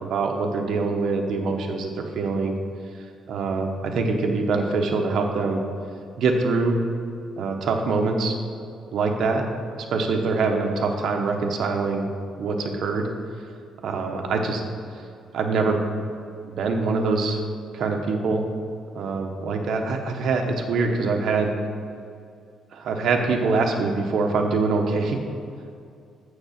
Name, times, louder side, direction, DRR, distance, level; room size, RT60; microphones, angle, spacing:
voice 1, 0.0-2.5 3.3-5.6 6.2-6.8 7.4-8.4 8.9-9.4 9.9-12.1 12.4-13.1 13.8-14.6 15.3-15.8 16.5-17.4 17.7-18.5 18.9-21.5 22.7-25.2, right 4 dB, 55° right, 3 dB, 1.0 m, -24 dB
7.3 x 6.5 x 5.8 m, 2.4 s
cardioid pair, 170°, 0 cm